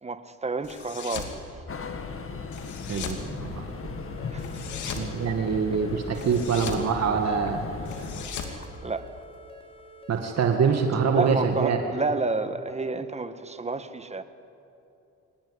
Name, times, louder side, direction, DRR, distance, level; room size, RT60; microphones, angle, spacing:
voice 1, 0.0-1.7 4.3-4.6 5.0-5.3 5.9-6.2 8.2-9.1 11.1-14.2, right 3 dB, 20° right, 10 dB, 1.5 m, -31 dB
sound 1, 0.6-1.4 2.5-3.2 4.4-5.1 6.1-6.9 7.8-9.4, left 7 dB, 75° left, 2.8 m, -37 dB
sound 2, 1.7-8.3, left 4 dB, 45° left, 2.2 m, -37 dB
voice 2, 2.9-3.7 4.8-7.7 10.1-11.8, right 6 dB, 60° right, 4 dB, 2.0 m, -25 dB
sound 3, 3.8-11.7, left 1 dB, 20° left, 3.7 m, -49 dB
24.5 x 18.5 x 9.9 m, 2.8 s
cardioid pair, 90°, 30 cm